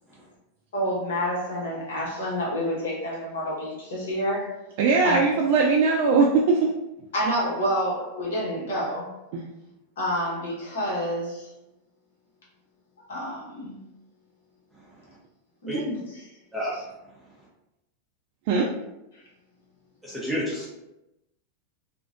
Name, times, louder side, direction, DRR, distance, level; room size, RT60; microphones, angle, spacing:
voice 1, 0.7-4.6 5.0-5.2 7.1-9.1 10.0-11.5 13.1-13.8 15.6-16.0 19.1-19.2, equal, 80° left, -5 dB, 1.1 m, -28 dB
voice 2, 4.8-6.7 18.5-18.7, right 4 dB, 55° right, -1 dB, 0.3 m, -20 dB
voice 3, 14.8-15.2 15.7-15.8 16.5-16.8 20.0-20.7, equal, 5° right, -8 dB, 0.6 m, -30 dB
2.5 x 2.1 x 2.5 m, 0.92 s
supercardioid pair, 130°, 0 cm